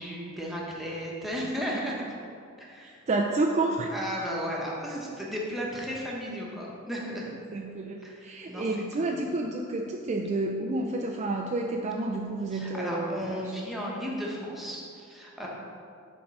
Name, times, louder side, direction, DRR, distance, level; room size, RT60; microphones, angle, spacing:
voice 1, 0.0-2.0 2.6-3.0 3.9-7.3 8.0-8.7 9.0-9.1 12.5-15.5, equal, ahead, -4 dB, 1.1 m, -34 dB
voice 2, 2.8-3.9 7.5-13.5, right 2 dB, 30° right, 1 dB, 0.4 m, -30 dB
7.2 x 3.7 x 6.1 m, 2.4 s
head